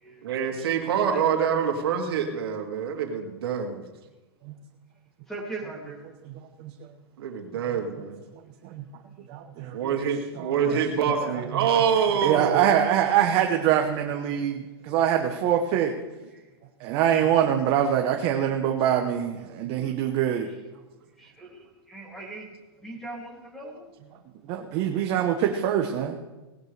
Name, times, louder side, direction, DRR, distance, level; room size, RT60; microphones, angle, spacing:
voice 1, 0.2-3.8 7.2-8.2 9.7-12.8, right 7 dB, 65° right, 2 dB, 2.4 m, -26 dB
voice 2, 5.3-6.0 10.7-10.8 11.2-11.4 16.3-16.4 21.2-22.5 22.8-23.8, right 2 dB, ahead, -1 dB, 2.7 m, -39 dB
voice 3, 6.2-6.7 7.7-7.8 8.6-8.8 9.3-10.0 10.3-10.8 11.0-11.7 12.2-15.9 16.8-20.5 24.5-26.2, right 9 dB, 35° right, 3 dB, 1.0 m, -24 dB
18.5 x 11.5 x 3.4 m, 1.2 s
hypercardioid pair, 155°, 13 cm